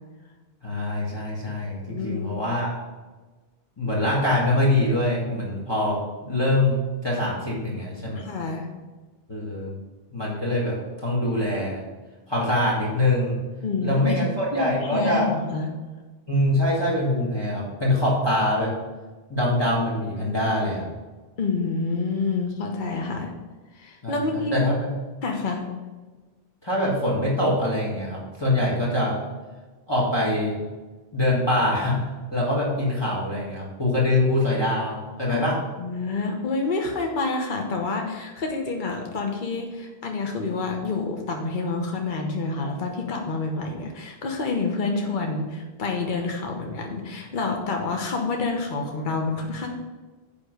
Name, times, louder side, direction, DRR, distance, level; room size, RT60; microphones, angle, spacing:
voice 1, 0.6-2.8 3.8-8.2 9.3-9.8 10.1-11.8 12.3-13.4 13.8-15.3 16.3-18.7 19.3-20.9 24.0-24.9 26.6-29.2 29.9-30.5 31.1-35.6, left 1 dB, 25° left, -5 dB, 1.7 m, -24 dB
voice 2, 1.9-2.3 8.1-8.7 13.6-14.2 14.5-15.7 21.4-23.3 23.7-24.6 25.2-25.7 35.3-35.5 35.8-49.8, left 3 dB, 50° left, 2 dB, 1.1 m, -28 dB
9.6 x 3.8 x 6.5 m, 1.3 s
omnidirectional pair, 1.0 m